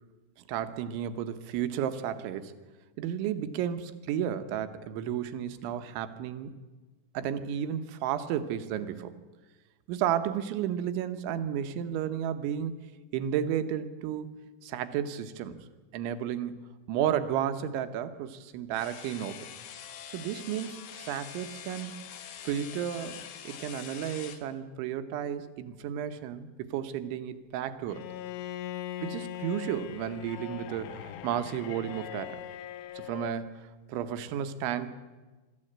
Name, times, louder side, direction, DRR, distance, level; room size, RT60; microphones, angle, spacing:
voice 1, 0.5-2.5 3.0-6.5 7.1-9.2 9.9-12.7 13.1-14.3 14.6-15.6 15.9-19.5 20.1-21.9 22.4-23.2 23.4-28.0 29.0-32.4 33.0-33.5 33.9-35.0, right 9 dB, 80° right, 10 dB, 3.4 m, -32 dB
sound 1, 18.7-24.4, left 9 dB, 65° left, 2.8 m, -45 dB
Bowed string instrument, 27.9-33.4, left 11 dB, 80° left, 2.2 m, -40 dB
23.5 x 13.5 x 8.8 m, 1.3 s
omnidirectional pair, 5.5 m